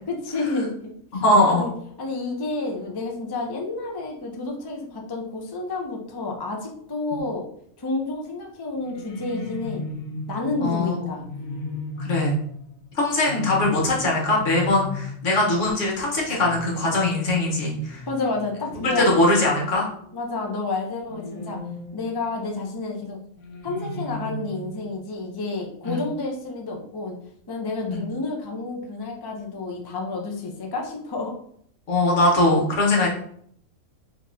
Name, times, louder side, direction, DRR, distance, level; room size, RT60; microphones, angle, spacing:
voice 1, 0.1-1.7 2.0-7.5 7.8-9.9 10.3-11.2 18.1-19.3 20.1-21.6 21.9-23.2 23.6-27.2 27.5-31.4, left 3 dB, 40° left, 1 dB, 0.3 m, -30 dB
voice 2, 1.1-1.6 10.6-11.1 12.0-12.4 12.9-18.0 18.8-19.9 25.9-26.0 27.9-28.1 31.9-33.1, left 2 dB, 65° left, -2 dB, 1.4 m, -21 dB
sound 1, 8.7-20.3 21.1-22.4 23.4-25.0, left 2 dB, 85° left, 1.1 m, -35 dB
5.2 x 3.0 x 2.6 m, 0.66 s
omnidirectional pair, 1.4 m